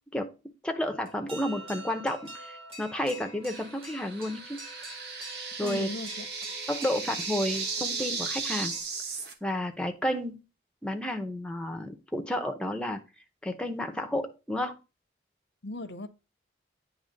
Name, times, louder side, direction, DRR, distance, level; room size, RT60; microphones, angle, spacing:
voice 1, 0.6-4.6 5.6-5.9 6.7-8.7 9.4-10.4 10.8-13.0 13.4-14.8, left 1 dB, 5° left, 0.7 m, -31 dB
sound 1, 0.8-8.8, equal, 30° right, 1.7 m, -46 dB
sound 2, 3.5-9.3, right 4 dB, 65° right, 1.1 m, -36 dB
voice 2, 5.6-6.3 15.6-16.1, left 2 dB, 80° left, 0.7 m, -37 dB
8.9 x 3.1 x 5.1 m
head